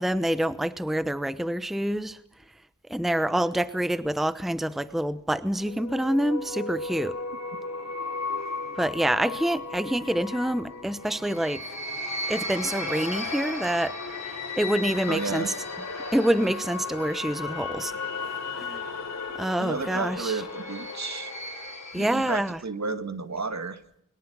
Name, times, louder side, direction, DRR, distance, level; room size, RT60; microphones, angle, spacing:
voice 1, 0.0-2.2 2.9-7.2 8.7-11.7 12.3-15.5 16.1-17.9 18.6-18.8 19.4-20.4 21.9-22.6, right 1 dB, ahead, 1.0 m, -27 dB
sound 1, 5.6-22.4, left 3 dB, 50° left, 4.3 m, -35 dB
voice 2, 15.1-15.5 19.6-21.3 21.9-23.8, right 4 dB, 55° right, 1.9 m, -32 dB
28.0 x 23.0 x 6.2 m
wide cardioid pair, 65°, 33 cm